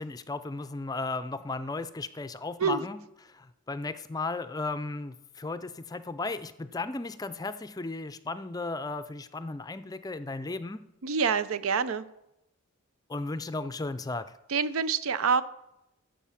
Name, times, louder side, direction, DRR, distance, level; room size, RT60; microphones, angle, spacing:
voice 1, 0.0-3.0 3.3-10.8 13.1-14.3, left 3 dB, 20° left, 12 dB, 0.4 m, -35 dB
voice 2, 11.0-12.1 14.5-15.4, right 5 dB, 90° right, 15 dB, 0.6 m, -26 dB
12.0 x 7.4 x 5.8 m, 0.88 s
head